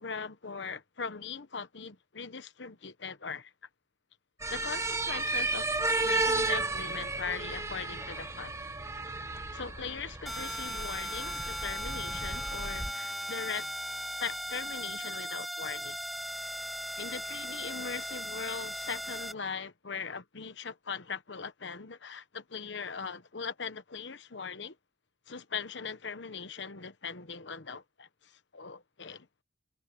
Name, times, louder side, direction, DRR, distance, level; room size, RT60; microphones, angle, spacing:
voice 1, 0.0-3.5 4.5-5.7 6.0-8.5 9.5-13.7 14.2-16.0 17.0-24.8 25.3-29.3, left 5 dB, 75° left, 1.1 m, -40 dB
sound 1, 4.4-12.9, right 2 dB, 15° right, 1.2 m, -33 dB
sound 2, 10.3-19.3, equal, ahead, 0.7 m, -38 dB
head